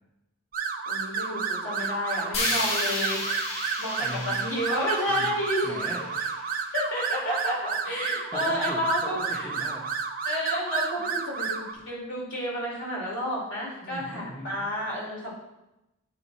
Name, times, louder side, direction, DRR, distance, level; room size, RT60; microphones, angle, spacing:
sound 1, 0.5-11.7, right 6 dB, 45° right, 0.7 m, -31 dB
voice 1, 0.9-3.2 3.8-5.7 6.7-9.5 10.2-15.3, equal, 65° left, -5 dB, 2.7 m, -30 dB
sound 2, 2.3-6.4, left 2 dB, 85° left, 1.4 m, -32 dB
voice 2, 4.0-4.5 5.1-5.3 5.6-6.5 8.0-9.9 13.8-14.6, equal, 10° left, -3 dB, 0.8 m, -40 dB
8.7 x 4.2 x 4.2 m, 0.92 s
head